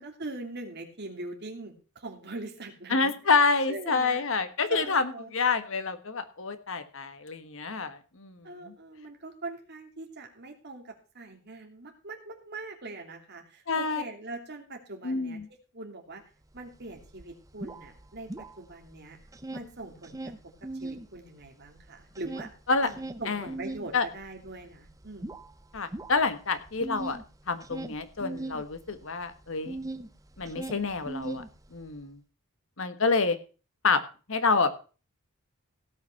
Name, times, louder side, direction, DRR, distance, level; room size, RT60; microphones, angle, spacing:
voice 1, 0.0-3.1 3.7-4.3 4.7-5.3 8.4-15.4 15.7-16.2 16.5-19.2 19.5-20.3 20.6-22.5 22.8-25.3, right 2 dB, 50° right, 3 dB, 2.9 m, -42 dB
voice 2, 2.9-8.7 13.7-14.0 15.0-15.5 22.7-22.9 23.3-23.4 23.9-24.0 25.7-27.2 27.5-29.8 30.4-31.4 31.7-32.2 32.8-33.4 33.8-34.0 34.3-34.7, left 4 dB, 65° left, 10 dB, 1.4 m, -28 dB
sound 1, 16.6-16.7 16.9-18.9 19.2-21.1 21.4-30.1 30.4-31.9, right 2 dB, 15° right, 0.7 m, -39 dB
17.0 x 5.8 x 5.9 m, 0.35 s
head